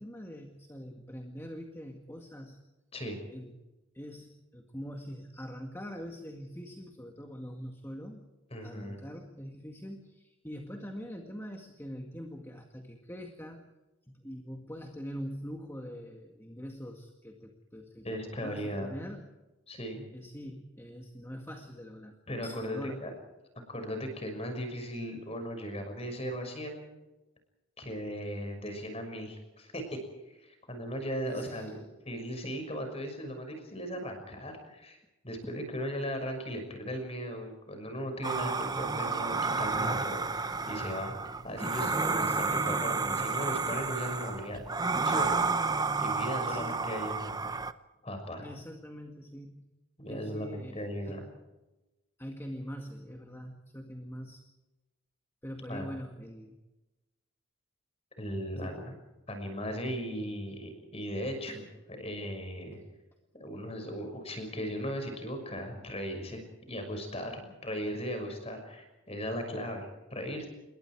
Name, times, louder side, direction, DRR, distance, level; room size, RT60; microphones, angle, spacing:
voice 1, 0.0-2.6 3.3-3.6 3.9-8.2 8.6-13.7 14.0-19.3 20.1-23.1 31.2-31.8 35.4-35.5 39.0-39.1 46.5-46.9 48.4-49.6 50.1-51.3 52.2-54.4 55.4-56.6 58.6-58.8 61.5-61.6, equal, 10° left, 3 dB, 2.0 m, -43 dB
voice 2, 8.5-9.0 18.0-18.9 19.7-20.1 22.3-23.1 23.7-26.9 27.8-30.0 30.3-35.0 35.2-41.1 41.4-44.6 45.0-45.4 46.0-47.4 48.0-48.5 50.0-51.2 55.7-55.9 58.2-58.9 59.3-61.7 62.0-62.8 63.3-70.5, equal, 30° left, 6 dB, 6.1 m, -37 dB
sound 1, 38.2-47.7, right 4 dB, 20° right, 0.7 m, -31 dB
28.5 x 22.5 x 4.8 m, 1.0 s
head